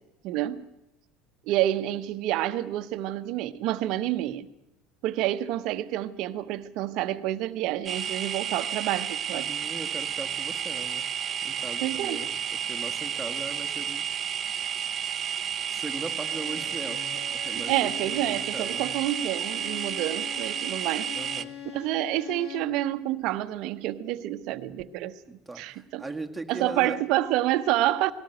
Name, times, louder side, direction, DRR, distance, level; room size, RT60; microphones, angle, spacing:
voice 1, 0.2-0.7 1.5-4.5 5.0-9.6 11.8-12.2 17.7-21.1 21.7-25.2 25.6-26.0 26.5-28.1, right 14 dB, 60° right, 1.0 m, -28 dB
sound 1, 7.9-21.4, right 9 dB, 35° right, 0.9 m, -31 dB
voice 2, 9.3-11.1 11.4-12.3 12.7-14.0 15.7-19.0 21.1-21.6 25.3-27.0, right 3 dB, 10° right, 2.0 m, -39 dB
Bowed string instrument, 15.9-22.8, left 9 dB, 55° left, 2.2 m, -43 dB
19.0 x 18.0 x 9.3 m
hypercardioid pair, 75°, 0 cm